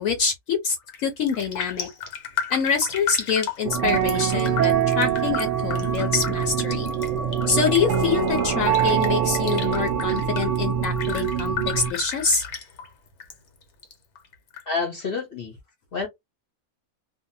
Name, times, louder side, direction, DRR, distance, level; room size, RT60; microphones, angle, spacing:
voice 1, 0.0-1.9 2.5-6.9 7.5-12.4, left 5 dB, 70° left, 1.0 m, -25 dB
Raindrop, 0.8-1.0 1.3-13.3 13.6-14.6 15.0-15.1, left 7 dB, 90° left, 1.3 m, -34 dB
sound 1, 3.6-11.9, right 8 dB, 65° right, 0.9 m, -24 dB
voice 2, 14.7-15.5 15.9-16.1, left 4 dB, 50° left, 0.8 m, -28 dB
2.6 x 2.1 x 2.6 m
omnidirectional pair, 1.5 m